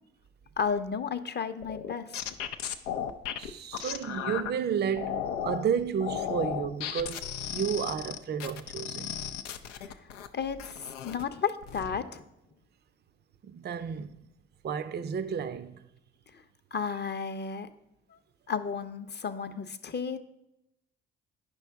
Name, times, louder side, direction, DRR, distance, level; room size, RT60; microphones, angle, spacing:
voice 1, 0.6-2.3 9.8-9.9 10.3-12.2 16.7-17.7 18.1-18.2 18.5-20.2, left 6 dB, 30° left, 0.7 m, -33 dB
sound 1, 1.6-4.5 5.0-5.6 6.0-10.3 10.6-11.2 11.6-12.0, left 9 dB, 90° left, 0.5 m, -35 dB
voice 2, 3.4-9.2 13.4-14.3 14.6-15.8, right 7 dB, 30° right, 0.5 m, -32 dB
9.8 x 5.6 x 3.5 m
hypercardioid pair, 45°, 35 cm